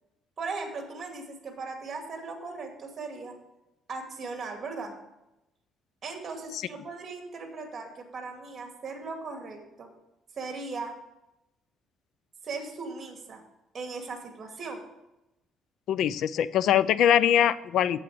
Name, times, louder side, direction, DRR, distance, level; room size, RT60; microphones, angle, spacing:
voice 1, 0.4-3.3 3.9-4.9 6.0-9.9 10.3-10.9 12.4-13.4 13.7-14.8, right 4 dB, 35° right, 3 dB, 2.3 m, -38 dB
voice 2, 15.9-18.0, left 10 dB, 65° left, 17 dB, 0.4 m, -22 dB
8.5 x 7.9 x 6.0 m, 0.92 s
cardioid pair, 135°, 0 cm